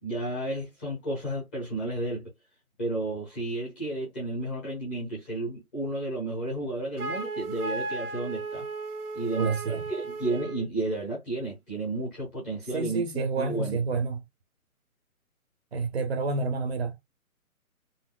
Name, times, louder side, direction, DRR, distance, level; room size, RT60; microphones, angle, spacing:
voice 1, 0.0-2.3 2.8-8.7 9.1-13.8, right 2 dB, 10° left, 0.8 m, -32 dB
Wind instrument woodwind instrument, 7.0-10.7, right 3 dB, 90° right, 1.0 m, -35 dB
voice 2, 9.4-9.8 12.7-14.2 15.7-17.1, right 4 dB, 45° right, 0.9 m, -29 dB
4.1 x 2.1 x 2.2 m
hypercardioid pair, 165°, 44 cm